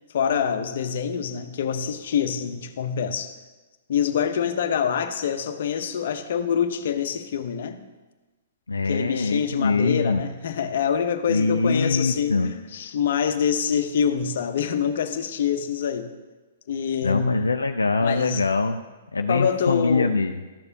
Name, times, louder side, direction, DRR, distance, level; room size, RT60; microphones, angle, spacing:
voice 1, 0.1-3.4 3.9-7.8 8.8-16.1 16.7-17.4 18.0-18.4 19.3-20.1, left 7 dB, 60° left, 8 dB, 0.7 m, -25 dB
voice 2, 8.7-10.2 11.3-12.5 17.0-18.8 19.1-20.4, left 3 dB, 90° left, 6 dB, 0.3 m, -23 dB
13.0 x 6.8 x 2.7 m, 1.2 s
hypercardioid pair, 120°, 0 cm